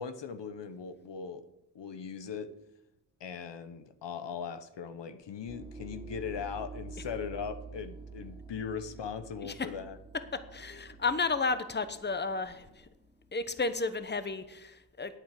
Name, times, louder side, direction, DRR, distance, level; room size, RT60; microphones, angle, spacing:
voice 1, 0.0-1.4 1.7-2.5 3.2-10.0, left 6 dB, 75° left, 10 dB, 0.9 m, -39 dB
sound 1, 5.5-14.2, right 4 dB, 10° right, 1.1 m, -48 dB
voice 2, 10.5-12.9 13.3-15.2, left 4 dB, 25° left, 11 dB, 1.0 m, -32 dB
8.9 x 8.1 x 7.5 m, 0.89 s
cardioid pair, 60°, 43 cm